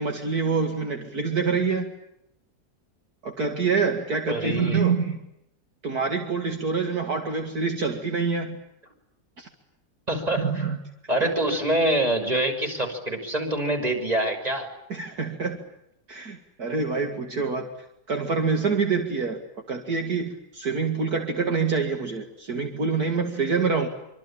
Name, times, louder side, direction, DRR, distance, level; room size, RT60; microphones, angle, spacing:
voice 1, 0.0-1.9 3.2-5.2 5.8-8.6 9.4-9.5 10.4-10.8 11.2-11.3 14.9-15.6 16.1-23.9, right 5 dB, 55° right, 4 dB, 2.7 m, -26 dB
voice 2, 4.3-4.9 10.1-10.4 11.1-14.7, right 1 dB, 20° right, 4 dB, 6.3 m, -25 dB
26.5 x 25.5 x 8.8 m, 0.82 s
omnidirectional pair, 2.0 m